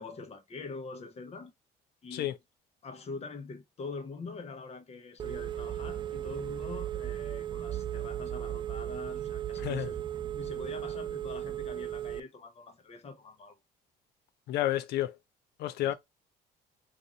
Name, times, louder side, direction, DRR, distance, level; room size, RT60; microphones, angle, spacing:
voice 1, 0.0-1.5 2.0-2.3 2.8-10.0 10.3-13.6 15.8-15.9, left 4 dB, 40° left, 0.9 m, -44 dB
Telephone, 5.2-12.2, right 11 dB, 30° right, 0.3 m, -36 dB
voice 2, 14.5-15.1 15.6-15.9, left 13 dB, 75° left, 0.5 m, -30 dB
2.7 x 2.5 x 4.0 m
cardioid pair, 110°, 17 cm